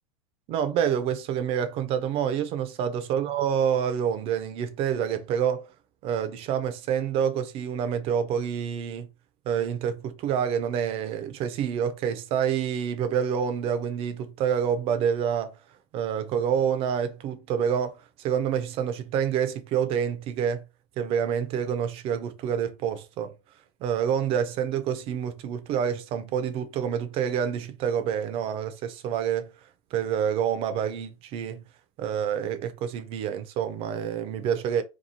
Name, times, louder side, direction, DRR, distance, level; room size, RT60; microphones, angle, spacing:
voice 1, 0.5-5.7 6.0-9.1 9.5-15.5 15.9-20.6 21.0-23.3 23.8-29.5 29.9-31.6 32.0-34.8, right 8 dB, 35° right, 0.4 m, -27 dB
2.9 x 2.3 x 2.6 m
supercardioid pair, 145°, 17 cm